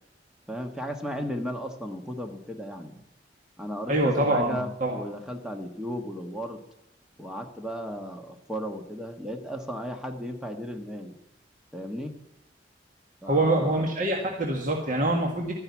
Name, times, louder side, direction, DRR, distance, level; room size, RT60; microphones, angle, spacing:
voice 1, 0.5-3.0 3.6-6.6 7.2-11.2 11.7-12.1 13.2-13.9, equal, 5° right, 4 dB, 1.3 m, -35 dB
voice 2, 3.9-5.0 13.3-15.5, right 1 dB, 50° right, 0 dB, 1.7 m, -25 dB
12.5 x 10.5 x 7.1 m, 0.89 s
head